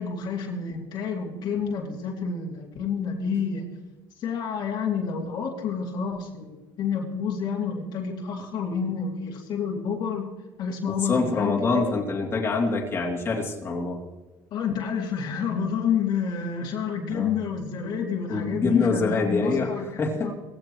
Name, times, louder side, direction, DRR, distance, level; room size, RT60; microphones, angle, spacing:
voice 1, 0.0-3.7 4.2-10.3 10.6-12.0 14.5-20.3, left 6 dB, 55° left, 0 dB, 2.5 m, -29 dB
voice 2, 11.1-14.0 17.1-17.3 18.3-19.7 20.0-20.3, left 4 dB, 30° left, -1 dB, 2.8 m, -25 dB
19.5 x 16.0 x 3.1 m, 1.2 s
cardioid pair, 125°, 9 cm